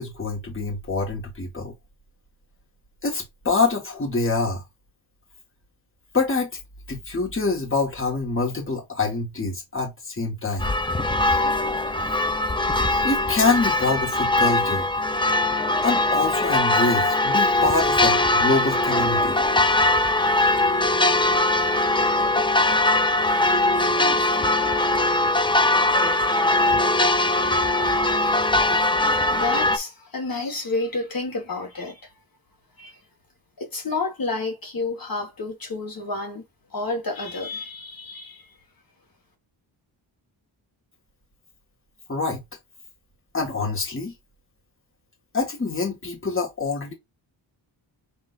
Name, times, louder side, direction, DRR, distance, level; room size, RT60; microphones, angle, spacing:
voice 1, 0.0-1.7 3.0-4.6 6.1-6.5 6.9-10.7 13.0-14.9 15.8-19.3 42.1-42.4 43.3-44.1 45.3-46.9, left 3 dB, 25° left, 1.8 m, -25 dB
sound 1, 10.6-29.8, left 2 dB, 10° left, 0.6 m, -21 dB
voice 2, 29.3-32.0 32.8-33.0 33.6-36.4 36.7-38.6, left 3 dB, 45° left, 1.7 m, -30 dB
6.1 x 3.1 x 2.6 m
wide cardioid pair, 115°, 46 cm